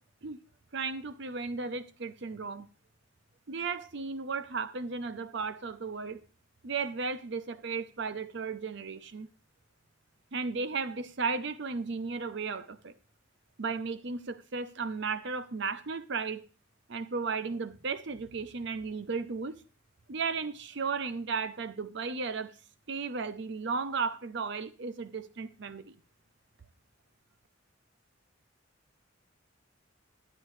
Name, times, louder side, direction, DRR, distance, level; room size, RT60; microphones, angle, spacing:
voice 1, 0.7-2.7 3.5-6.2 6.6-9.3 10.3-12.9 13.6-16.4 16.9-19.5 20.1-22.5 22.9-25.9, right 4 dB, 60° right, 0.7 m, -35 dB
12.5 x 10.0 x 3.2 m
head